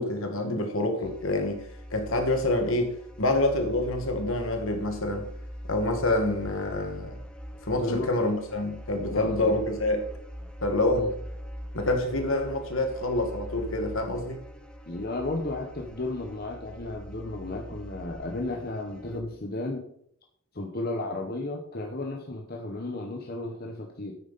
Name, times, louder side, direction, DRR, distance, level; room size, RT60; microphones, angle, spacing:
voice 1, 0.0-1.6 1.9-5.3 5.7-7.2 7.6-10.0 10.6-11.1 11.7-14.4, left 2 dB, 65° left, 1.8 m, -27 dB
sound 1, 1.0-19.2, equal, 5° left, 0.8 m, -42 dB
voice 2, 7.8-8.1 9.1-9.5 10.9-11.1 14.9-19.8 20.5-24.2, left 2 dB, 45° left, 1.1 m, -33 dB
9.1 x 9.0 x 4.1 m
head